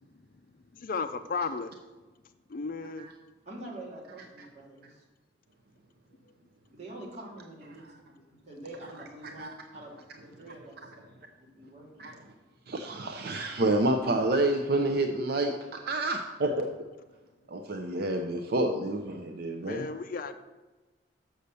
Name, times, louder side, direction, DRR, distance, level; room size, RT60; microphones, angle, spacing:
voice 1, 0.8-1.7 2.5-3.1 19.7-20.3, left 4 dB, 45° left, 9 dB, 0.4 m, -34 dB
voice 2, 3.4-5.0 6.7-7.9 8.3-9.9 10.2-10.9 11.6-12.1, right 1 dB, 35° right, -5 dB, 2.5 m, -45 dB
voice 3, 12.7-16.7 17.5-19.9, right 2 dB, 55° right, 5 dB, 0.6 m, -28 dB
6.8 x 6.4 x 6.7 m, 1.2 s
head